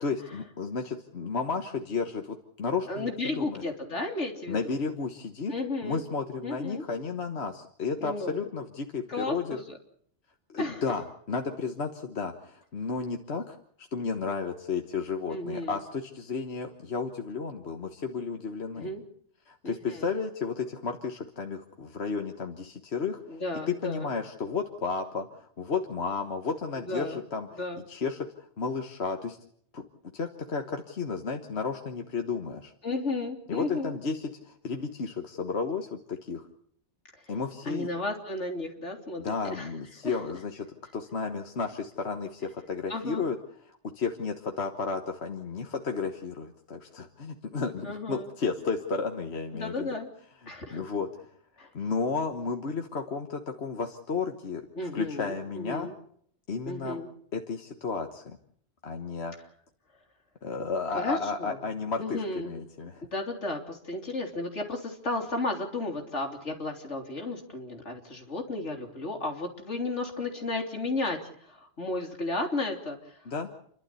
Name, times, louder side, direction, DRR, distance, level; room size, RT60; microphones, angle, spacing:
voice 1, 0.0-3.6 4.5-5.5 5.8-9.6 10.5-18.9 19.5-23.2 23.7-27.5 27.9-29.4 29.7-29.8 30.1-32.7 33.5-36.5 37.3-37.9 39.2-40.7 40.9-43.4 43.7-49.9 50.7-51.1 51.6-54.6 54.9-55.9 56.5-57.0 57.3-58.4 58.8-59.3 60.4-63.1 73.3-73.5, left 4 dB, 65° left, 4 dB, 1.7 m, -33 dB
voice 2, 2.9-4.7 5.5-6.0 6.4-6.8 8.0-8.5 9.1-9.7 10.6-10.8 15.3-15.8 18.8-19.0 19.6-20.1 23.3-24.1 26.9-27.2 27.6-27.8 32.8-34.0 37.2-37.3 37.7-39.7 40.0-40.2 42.9-43.2 47.8-48.3 49.5-50.1 50.5-50.8 51.6-51.7 54.8-55.9 56.7-57.1 60.9-61.6 62.0-62.5 63.0-73.3, left 2 dB, 85° left, 3 dB, 3.5 m, -33 dB
29.5 x 12.0 x 8.4 m, 0.64 s
omnidirectional pair, 1.2 m